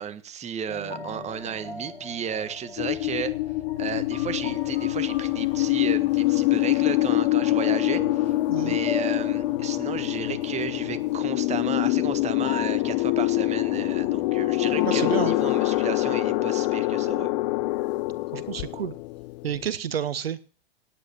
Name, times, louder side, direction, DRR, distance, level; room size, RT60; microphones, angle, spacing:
voice 1, 0.0-3.3 3.8-17.3, right 8 dB, 20° right, 13 dB, 1.5 m, -34 dB
sound 1, 0.7-14.3, left 3 dB, 85° left, 3.4 m, -40 dB
sound 2, 2.8-19.7, left 19 dB, 45° left, 0.9 m, -25 dB
voice 2, 14.8-15.4 18.3-18.9 19.4-20.4, right 9 dB, 75° right, 17 dB, 1.0 m, -30 dB
17.5 x 9.5 x 4.5 m, 0.39 s
figure-of-eight pair, 95°, 30 cm